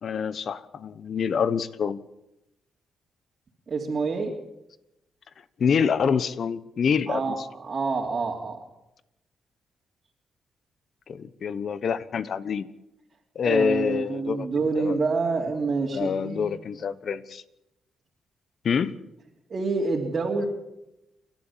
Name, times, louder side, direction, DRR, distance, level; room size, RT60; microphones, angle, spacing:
voice 1, 0.0-2.0 5.6-7.4 11.1-12.7 13.3-15.0 15.9-17.4 18.6-18.9, left 6 dB, 60° left, 15 dB, 1.2 m, -26 dB
voice 2, 3.7-4.3 7.1-8.6 13.4-16.4 19.5-20.5, right 4 dB, 45° right, -3 dB, 3.3 m, -27 dB
29.0 x 12.5 x 7.5 m, 0.89 s
cardioid pair, 90°, 0 cm